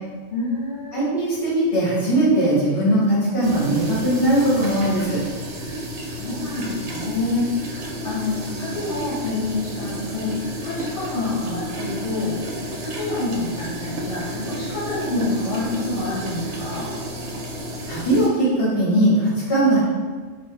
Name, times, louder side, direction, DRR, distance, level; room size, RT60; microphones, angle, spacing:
voice 1, 0.3-1.1 5.5-16.9, left 3 dB, 80° left, -8 dB, 1.2 m, -28 dB
voice 2, 0.9-5.2 17.9-19.8, right 1 dB, 55° left, -7 dB, 1.6 m, -19 dB
sound 1, 3.4-18.3, equal, 85° right, 1.0 m, -31 dB
4.1 x 2.3 x 3.3 m, 1.5 s
omnidirectional pair, 1.2 m